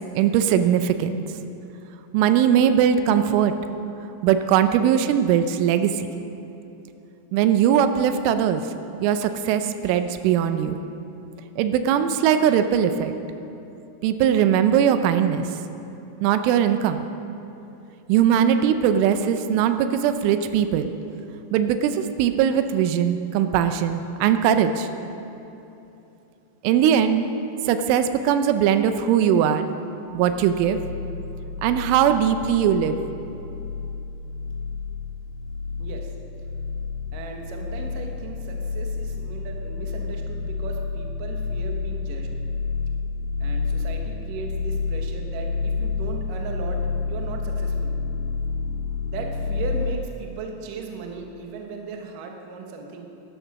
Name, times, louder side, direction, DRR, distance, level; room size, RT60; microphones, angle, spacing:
voice 1, 0.2-1.2 2.1-3.5 4.2-6.1 7.3-8.7 9.0-10.7 11.6-13.1 14.0-15.5 16.2-17.1 18.1-20.9 21.5-24.9 26.6-27.2 27.7-29.7 30.1-30.8 31.6-33.0, right 9 dB, 85° right, 9 dB, 3.2 m, -20 dB
sound 1, 30.1-50.0, left 4 dB, 85° left, 3.4 m, -30 dB
voice 2, 35.8-36.1 37.1-42.3 43.4-46.8 47.1-47.9 49.1-53.0, right 4 dB, 70° right, 2 dB, 2.2 m, -37 dB
12.0 x 12.0 x 6.2 m, 3.0 s
omnidirectional pair, 5.5 m